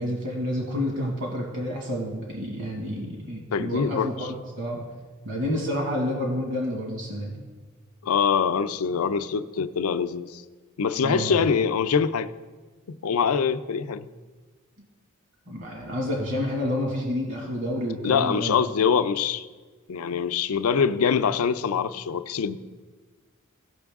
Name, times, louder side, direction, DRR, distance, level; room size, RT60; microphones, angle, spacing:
voice 1, 0.0-4.9 5.3-7.4 11.0-11.5 15.5-18.5, left 1 dB, 60° right, -2 dB, 1.8 m, -29 dB
voice 2, 3.5-4.1 8.0-10.4 10.8-12.3 12.9-14.1 18.0-19.5 19.9-22.6, left 6 dB, 90° left, 12 dB, 0.5 m, -24 dB
16.5 x 5.9 x 3.6 m, 1.4 s
head